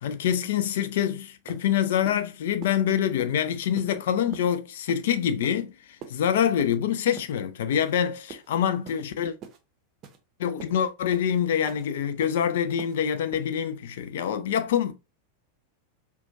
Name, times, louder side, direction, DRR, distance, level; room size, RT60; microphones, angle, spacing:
voice 1, 0.0-9.4 10.4-14.9, left 9 dB, 55° left, 0.4 m, -26 dB
sound 1, 1.0-1.1 1.5-1.6 2.0-2.2 2.6-2.7 3.2-3.3 3.7-3.9 4.3-4.5 4.9-5.0 5.4-5.6 6.0-6.2 6.6-6.8 7.2-7.3 7.7-7.9 8.3-8.5 8.8-9.0 9.4-9.6 10.0-10.2 10.6-10.7 11.1-11.3 11.7-11.8 12.2-12.4 12.8-13.0 13.3-13.4, right 7 dB, 35° right, 0.6 m, -43 dB
4.3 x 2.3 x 2.6 m
figure-of-eight pair, 90°, 0 cm